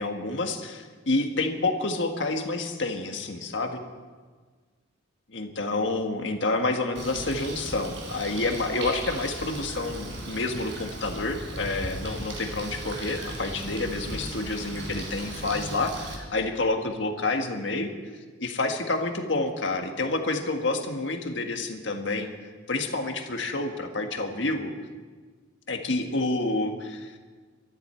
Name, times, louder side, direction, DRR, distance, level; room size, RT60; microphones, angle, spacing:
voice 1, 0.0-3.8 5.3-17.9 18.4-22.3 22.7-24.7 25.7-27.1, left 2 dB, 65° left, 4 dB, 1.6 m, -28 dB
Bird, 6.9-16.1, right 2 dB, 65° right, 4.0 m, -37 dB
23.5 x 13.5 x 4.5 m, 1.5 s
head